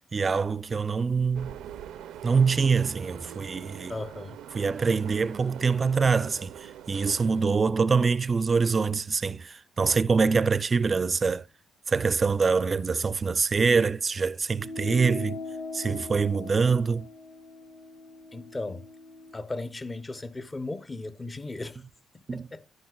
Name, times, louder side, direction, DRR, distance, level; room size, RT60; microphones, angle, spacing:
voice 1, 0.1-1.6 2.2-3.9 4.5-11.5 11.9-15.4 15.7-17.1 22.3-22.5, right 5 dB, 35° right, 0.4 m, -25 dB
sound 1, 1.3-7.4, right 10 dB, 85° right, 0.5 m, -43 dB
voice 2, 3.9-4.4 18.3-18.9 19.3-21.8 22.1-22.6, left 2 dB, 20° left, 0.7 m, -36 dB
sound 2, 14.6-19.4, left 3 dB, 70° left, 2.6 m, -40 dB
11.5 x 10.5 x 2.3 m
cardioid pair, 90°, 0 cm